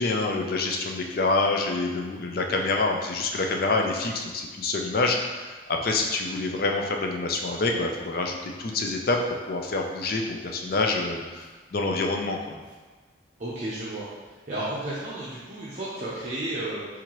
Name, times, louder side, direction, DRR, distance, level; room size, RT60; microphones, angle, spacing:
voice 1, 0.0-9.2 9.5-12.6, left 3 dB, 50° left, 2 dB, 0.5 m, -27 dB
voice 2, 13.4-14.0 14.5-16.9, right 1 dB, 40° right, -10 dB, 0.8 m, -32 dB
4.4 x 3.8 x 3.0 m, 1.3 s
head